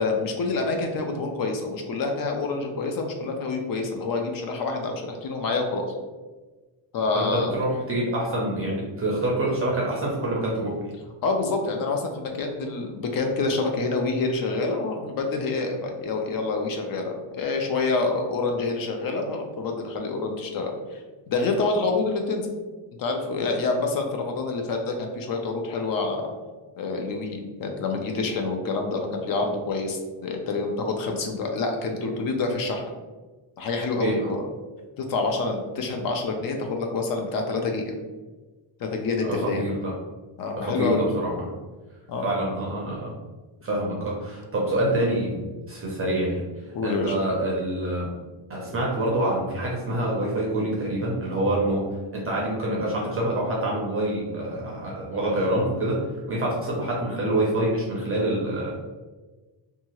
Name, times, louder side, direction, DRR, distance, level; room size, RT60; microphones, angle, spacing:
voice 1, 0.0-6.0 6.9-7.5 11.2-21.0 21.3-22.6 23.0-26.3 26.8-32.9 33.6-34.5 35.0-37.9 38.8-39.6 40.4-41.0 42.1-42.2 46.7-47.1, left 3 dB, 50° left, 3 dB, 0.5 m, -27 dB
voice 2, 7.1-10.9 34.0-34.2 39.2-39.9 40.6-41.5 42.2-43.1 43.6-45.4 45.7-46.4 46.8-48.1 48.5-51.9 52.1-58.7, right 1 dB, 30° right, -4 dB, 0.5 m, -26 dB
2.7 x 2.3 x 2.9 m, 1.3 s
cardioid pair, 170°, 48 cm